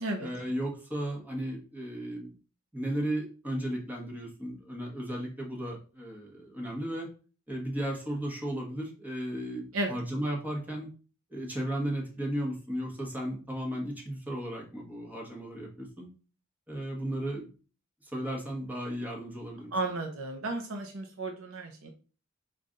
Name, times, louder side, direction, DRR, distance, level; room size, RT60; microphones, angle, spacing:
voice 1, 0.2-2.3 2.7-7.1 7.5-10.9 11.3-16.1 16.7-17.5 18.0-19.7, right 1 dB, 10° right, -1 dB, 1.2 m, -35 dB
voice 2, 19.7-21.9, right 2 dB, 75° right, 2 dB, 0.7 m, -33 dB
5.6 x 2.5 x 3.7 m, 0.37 s
head